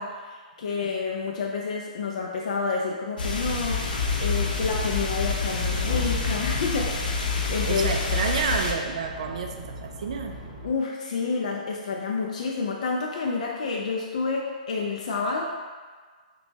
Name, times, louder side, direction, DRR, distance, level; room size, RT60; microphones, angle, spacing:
voice 1, 0.0-7.9 10.6-15.5, left 4 dB, 50° left, -1 dB, 0.4 m, -29 dB
sound 1, 3.2-8.7, left 4 dB, 85° left, 0.7 m, -27 dB
sound 2, 3.8-10.7, equal, 15° right, 0.7 m, -39 dB
voice 2, 7.7-10.4, right 5 dB, 50° right, 3 dB, 0.3 m, -29 dB
5.8 x 2.2 x 2.7 m, 1.5 s
hypercardioid pair, 175°, 5 cm